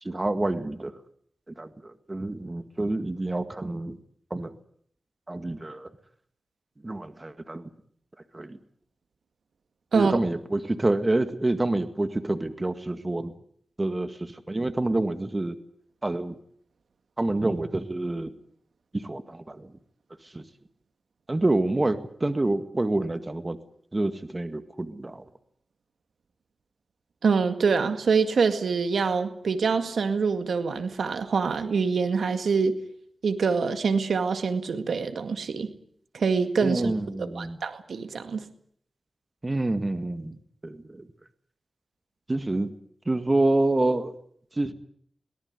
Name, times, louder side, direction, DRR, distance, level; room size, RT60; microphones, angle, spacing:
voice 1, 0.0-1.0 1.5-4.0 4.3-4.6 5.3-5.9 6.8-7.7 8.3-8.6 9.9-13.3 13.8-15.6 16.0-16.4 17.2-18.3 18.9-19.7 20.2-20.5 21.3-23.6 23.9-25.3 36.6-37.6 39.4-41.1 42.3-42.7 43.1-44.1 44.5-44.7, right 2 dB, 30° right, 1.9 m, -27 dB
voice 2, 27.2-32.8 33.2-35.7 36.1-36.9 37.2-38.4, right 5 dB, 85° right, 2.0 m, -25 dB
22.5 x 18.0 x 9.6 m
cardioid pair, 55°, 0 cm